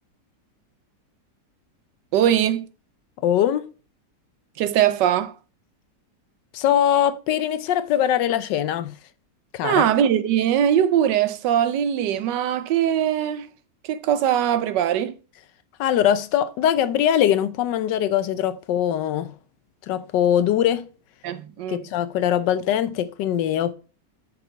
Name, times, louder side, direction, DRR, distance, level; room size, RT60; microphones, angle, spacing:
voice 1, 2.1-2.7 4.6-5.3 9.6-13.5 13.8-15.2 21.2-21.9, right 10 dB, 85° right, 1.3 m, -21 dB
voice 2, 3.2-3.6 6.5-8.9 9.5-9.9 15.8-19.3 19.9-20.9 21.7-23.7, left 10 dB, 85° left, 1.4 m, -22 dB
7.5 x 5.8 x 3.9 m
omnidirectional pair, 1.9 m